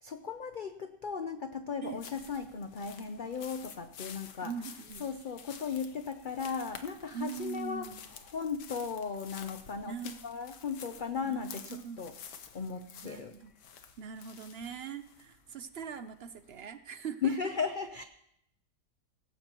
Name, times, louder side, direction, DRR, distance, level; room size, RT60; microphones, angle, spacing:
voice 1, 0.0-4.5 5.0-7.9 8.3-10.0 10.2-12.1 12.5-13.3 17.2-18.0, left 6 dB, 60° left, 8 dB, 0.5 m, -36 dB
sound 1, 1.8-16.7, left 7 dB, 90° left, 1.6 m, -51 dB
voice 2, 4.4-5.1 7.1-8.0 9.8-10.2 11.2-12.0 13.0-13.5 14.0-17.5, right 7 dB, 60° right, 11 dB, 0.6 m, -42 dB
18.0 x 15.5 x 3.0 m, 0.76 s
omnidirectional pair, 1.8 m